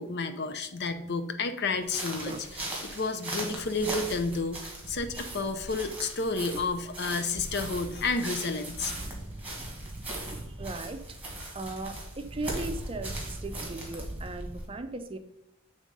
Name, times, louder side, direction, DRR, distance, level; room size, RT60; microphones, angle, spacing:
voice 1, 0.0-2.3 2.8-8.9, left 3 dB, 55° left, 9 dB, 0.6 m, -31 dB
sound 1, 1.8-14.7, right 1 dB, 10° right, 1.7 m, -38 dB
voice 2, 10.3-11.2 11.5-15.2, right 2 dB, 25° right, 8 dB, 0.5 m, -38 dB
7.7 x 3.6 x 5.2 m, 0.78 s
head